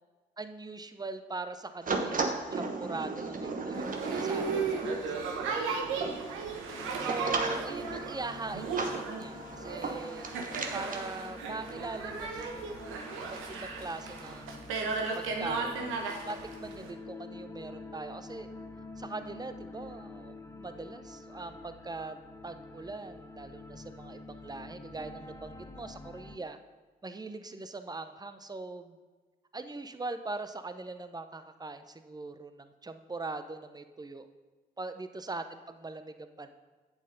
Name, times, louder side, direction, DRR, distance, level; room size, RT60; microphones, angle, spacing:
voice 1, 0.4-6.5 7.0-10.3 10.7-15.9 16.2-18.5 19.0-22.2 22.4-26.6 27.0-29.0 29.5-34.3 34.8-36.5, right 3 dB, 20° right, 9 dB, 0.8 m, -41 dB
sound 1, 1.8-11.0, right 3 dB, 40° right, 1.1 m, -36 dB
Boat Water vehicle, 3.7-16.9, right 5 dB, 75° right, 1.1 m, -36 dB
sound 2, 6.8-26.4, left 2 dB, 15° left, 0.8 m, -47 dB
8.6 x 7.2 x 4.0 m, 1.3 s
hypercardioid pair, 45°, 21 cm